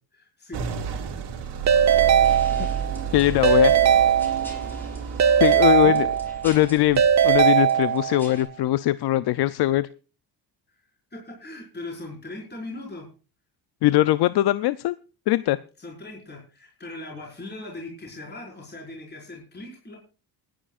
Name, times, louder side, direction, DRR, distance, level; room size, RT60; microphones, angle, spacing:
voice 1, 0.1-0.9 4.7-5.1 5.8-6.1 11.1-13.1 15.8-20.0, left 2 dB, 25° left, -2 dB, 5.3 m, -39 dB
sound 1, 0.5-7.4, right 7 dB, 80° right, 2.9 m, -32 dB
Keyboard (musical) / Ringtone, 1.7-3.0 3.4-4.8 5.2-6.5 7.0-8.3, right 9 dB, 40° right, 0.9 m, -19 dB
sound 2, 2.2-8.5, equal, 5° left, 5.1 m, -47 dB
voice 2, 3.1-3.8 5.4-6.1 6.4-9.9 13.8-15.0 15.3-15.6, left 15 dB, 70° left, 16 dB, 0.6 m, -21 dB
27.5 x 10.0 x 2.4 m, 0.35 s
cardioid pair, 110°, 41 cm